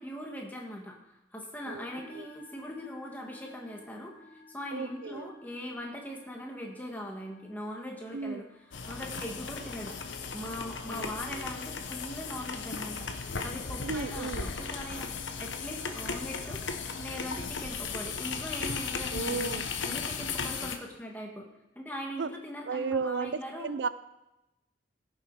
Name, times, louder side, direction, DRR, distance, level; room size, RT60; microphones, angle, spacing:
voice 1, 0.0-10.0 10.3-16.6 17.0-19.5 19.9-21.4 21.7-23.7, equal, 10° left, 0 dB, 1.7 m, -41 dB
voice 2, 1.7-2.3 4.7-5.3 8.1-8.5 10.9-11.5 13.8-14.5 19.1-19.7 22.2-22.3 22.7-23.9, right 4 dB, 70° right, 14 dB, 0.4 m, -34 dB
Musical instrument, 1.8-16.4, left 2 dB, 15° right, 4.5 m, -58 dB
sound 1, 8.7-20.8, left 5 dB, 85° left, 1.1 m, -36 dB
16.5 x 7.1 x 4.8 m, 0.94 s
head